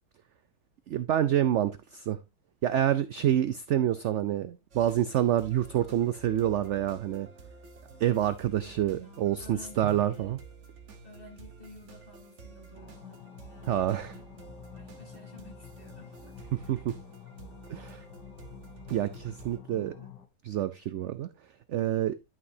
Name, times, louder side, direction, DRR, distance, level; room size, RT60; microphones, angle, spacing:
voice 1, 0.9-2.2 2.6-7.3 8.0-10.4 13.7-14.2 16.5-17.0 17.7-18.0 18.9-19.9 20.4-21.3 21.7-22.2, right 11 dB, 75° right, 0.6 m, -27 dB
sound 1, 4.7-19.6, right 4 dB, 50° right, 1.5 m, -50 dB
voice 2, 8.6-10.4 11.0-16.8, left 2 dB, 30° left, 3.6 m, -53 dB
sound 2, 12.7-20.3, left 9 dB, 80° left, 1.7 m, -49 dB
11.5 x 6.0 x 2.7 m
omnidirectional pair, 1.8 m